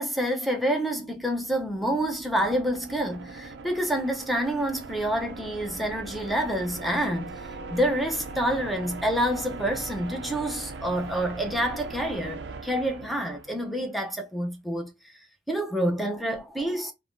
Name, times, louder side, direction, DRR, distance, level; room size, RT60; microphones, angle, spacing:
voice 1, 0.0-14.9 15.5-16.9, right 1 dB, ahead, 0.6 m, -28 dB
sound 1, 0.8-13.9, right 3 dB, 75° right, 0.4 m, -40 dB
3.2 x 2.2 x 2.5 m
head